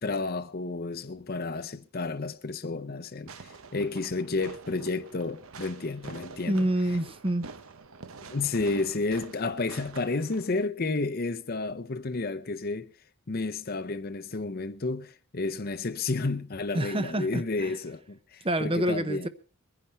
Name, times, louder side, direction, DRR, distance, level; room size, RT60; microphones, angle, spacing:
voice 1, 0.0-6.7 8.2-12.9 13.3-19.3, left 3 dB, 45° left, 0.7 m, -31 dB
Fireworks, 3.3-10.7, right 4 dB, 70° right, 0.8 m, -46 dB
voice 2, 6.5-7.5 16.7-17.7 18.4-19.3, right 1 dB, 25° right, 0.8 m, -27 dB
22.5 x 10.0 x 4.3 m
head